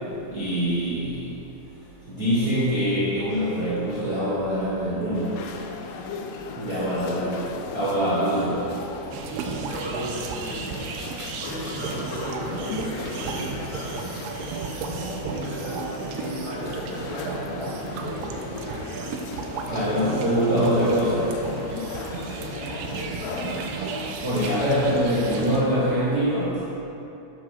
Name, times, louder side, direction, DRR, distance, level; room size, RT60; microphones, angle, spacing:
voice 1, 0.3-1.2 2.1-5.3 6.6-7.4 7.7-8.8 19.7-21.3 24.2-26.6, equal, 55° right, -10 dB, 1.0 m, -24 dB
sound 1, 5.1-25.0, left 5 dB, 90° left, 3.0 m, -37 dB
sound 2, 9.1-25.6, right 5 dB, 80° right, 2.5 m, -34 dB
voice 2, 9.6-10.6 11.4-14.1 15.2-19.1 19.7-20.5 22.6-23.4, equal, 70° left, -6 dB, 4.3 m, -36 dB
11.0 x 6.2 x 5.8 m, 2.9 s
omnidirectional pair, 5.1 m